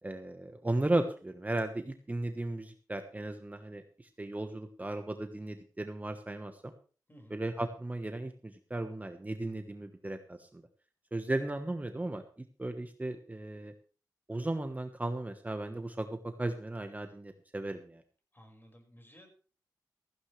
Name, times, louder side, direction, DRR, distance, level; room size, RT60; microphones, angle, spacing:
voice 1, 0.0-6.7 7.3-10.6 11.1-12.2 12.6-13.7 14.3-18.0, right 2 dB, 20° right, 6 dB, 1.2 m, -36 dB
voice 2, 7.1-7.5 18.3-19.3, equal, 30° left, 3 dB, 5.4 m, -56 dB
15.5 x 15.0 x 3.3 m, 0.38 s
wide cardioid pair, 75°, 7 cm